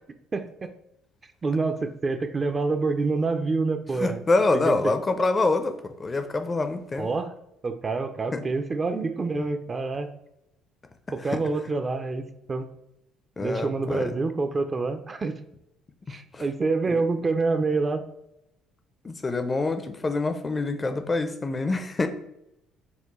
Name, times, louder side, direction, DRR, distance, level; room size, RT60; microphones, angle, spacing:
voice 1, 0.3-0.7 1.4-4.2 4.5-4.9 7.0-7.3 7.6-10.1 11.1-12.7 13.4-15.4 16.1-18.0, right 3 dB, 30° right, 8 dB, 0.4 m, -27 dB
voice 2, 4.0-7.1 8.3-8.4 11.3-11.4 13.4-14.1 16.3-16.4 16.9-17.0 19.0-22.1, left 3 dB, 25° left, 8 dB, 0.4 m, -26 dB
5.4 x 2.2 x 2.9 m, 0.84 s
figure-of-eight pair, 50°, 0 cm